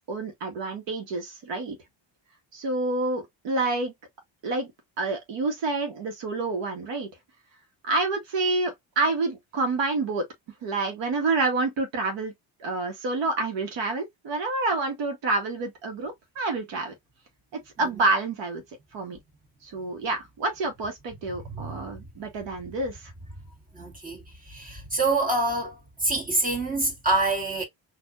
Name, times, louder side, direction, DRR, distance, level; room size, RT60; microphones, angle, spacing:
voice 1, 0.1-1.8 2.5-3.9 4.4-4.7 5.0-7.1 7.8-10.3 10.6-12.3 12.6-16.9 17.8-18.6 18.9-19.2 19.6-23.1, right 3 dB, 65° right, 1.3 m, -28 dB
voice 2, 21.3-22.0 23.7-27.6, right 2 dB, 15° right, 1.7 m, -27 dB
4.5 x 2.7 x 2.5 m
cardioid pair, 145°, 47 cm